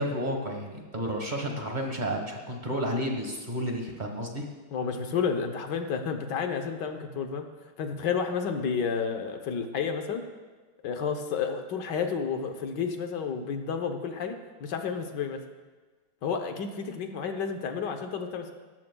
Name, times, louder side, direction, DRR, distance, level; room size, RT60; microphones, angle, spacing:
voice 1, 0.0-4.4, equal, 25° right, 2 dB, 1.2 m, -31 dB
voice 2, 4.7-7.5 7.8-10.3 10.8-15.4 16.2-18.5, left 6 dB, 65° left, 6 dB, 1.4 m, -31 dB
18.5 x 14.0 x 2.3 m, 1.3 s
omnidirectional pair, 2.2 m